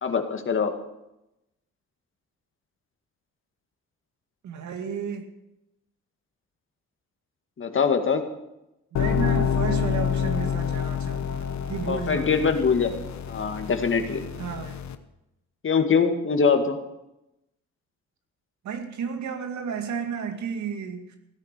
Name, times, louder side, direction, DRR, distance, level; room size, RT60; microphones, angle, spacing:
voice 1, 0.0-0.7 7.6-8.2 11.9-12.9 13.3-14.2 15.6-16.8, left 5 dB, 40° left, 6 dB, 2.1 m, -23 dB
voice 2, 4.4-5.3 8.9-12.5 14.4-14.8 18.6-21.2, right 7 dB, 70° right, 6 dB, 2.4 m, -32 dB
sound 1, 8.9-14.9, left 8 dB, 65° left, 1.2 m, -28 dB
16.5 x 9.6 x 6.8 m, 0.89 s
cardioid pair, 90°, 30 cm